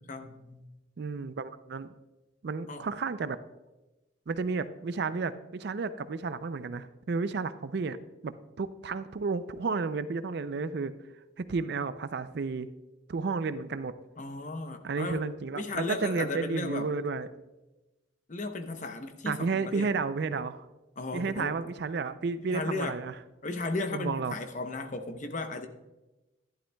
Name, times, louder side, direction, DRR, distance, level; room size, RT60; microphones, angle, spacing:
voice 1, 0.1-0.6 2.7-2.8 14.2-15.3 15.5-16.9 18.3-19.9 21.0-21.6 22.5-22.9 23.4-25.7, left 2 dB, 40° left, 7 dB, 0.8 m, -35 dB
voice 2, 1.0-1.9 2.4-3.4 4.3-8.0 8.2-10.9 11.4-12.7 13.1-13.9 14.8-17.3 19.3-20.7 21.1-23.2 23.9-24.4, right 4 dB, 55° right, 13 dB, 0.4 m, -32 dB
11.5 x 11.5 x 2.3 m, 1.0 s
head